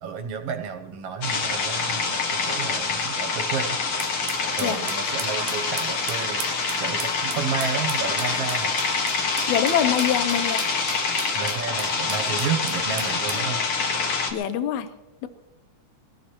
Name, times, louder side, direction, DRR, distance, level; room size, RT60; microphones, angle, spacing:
voice 1, 0.0-3.8 4.6-6.4 6.8-8.8 11.3-13.6, right 6 dB, 65° right, 6 dB, 1.8 m, -31 dB
sound 1, 1.2-14.3, left 4 dB, 55° left, 2.4 m, -26 dB
sound 2, 4.0-13.5, right 10 dB, 85° right, 2.2 m, -38 dB
voice 2, 9.5-10.7 14.3-14.9 15.2-15.3, left 10 dB, 75° left, 11 dB, 2.1 m, -24 dB
22.0 x 17.0 x 3.0 m, 1.0 s
omnidirectional pair, 3.5 m